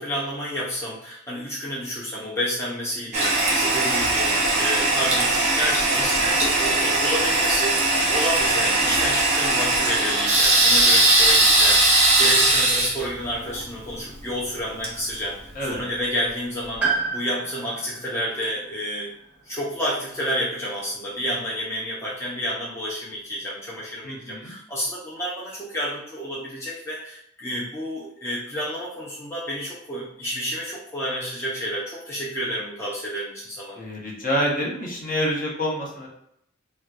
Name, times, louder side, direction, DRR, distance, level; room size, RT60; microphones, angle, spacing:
voice 1, 0.0-15.4 15.7-19.1 19.4-33.8, equal, 15° left, -6 dB, 0.5 m, -30 dB
Toilet flush, 3.1-15.8, right 2 dB, 35° right, 0.8 m, -20 dB
voice 2, 6.0-6.4 15.5-15.8 24.0-24.5 33.7-36.1, equal, 45° left, -3 dB, 0.9 m, -27 dB
Piano, 16.8-20.7 20.9-21.0 22.2-22.3, right 5 dB, 5° right, 1.0 m, -31 dB
4.2 x 2.2 x 2.4 m, 0.74 s
head